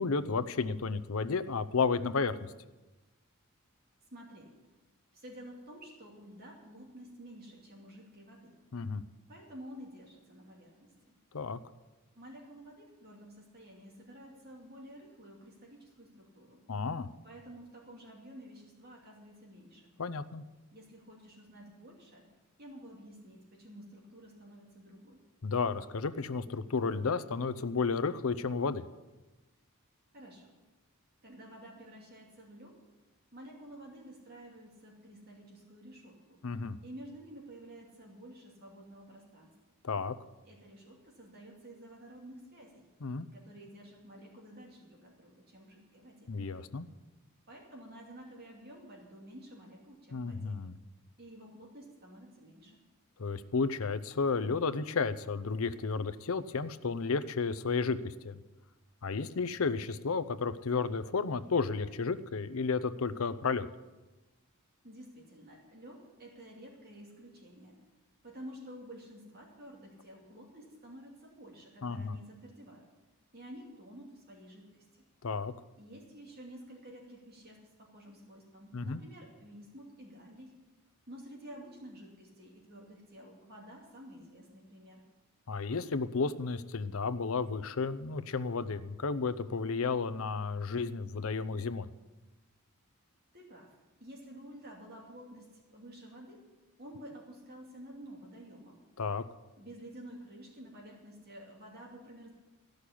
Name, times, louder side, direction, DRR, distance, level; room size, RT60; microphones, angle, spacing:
voice 1, 0.0-2.5 8.7-9.0 11.3-11.6 16.7-17.1 20.0-20.4 25.4-28.8 36.4-36.8 39.8-40.1 43.0-43.3 46.3-46.9 50.1-50.8 53.2-58.3 59.0-63.7 71.8-72.2 75.2-75.5 78.7-79.0 85.5-91.9 99.0-99.2, left 4 dB, 65° left, 13 dB, 0.6 m, -32 dB
voice 2, 4.1-4.6 5.1-8.6 9.3-11.2 12.1-16.6 17.2-19.9 20.7-22.3 22.6-25.2 30.1-30.5 31.2-32.8 33.3-36.4 36.8-39.5 40.5-42.9 43.3-46.3 47.5-50.6 51.2-52.8 64.8-67.8 68.2-72.9 73.3-75.0 75.8-80.6 81.1-85.0 93.3-96.4 96.8-98.8 99.6-102.3, right 1 dB, 45° right, -1 dB, 2.6 m, -51 dB
14.5 x 6.6 x 9.9 m, 1.1 s
head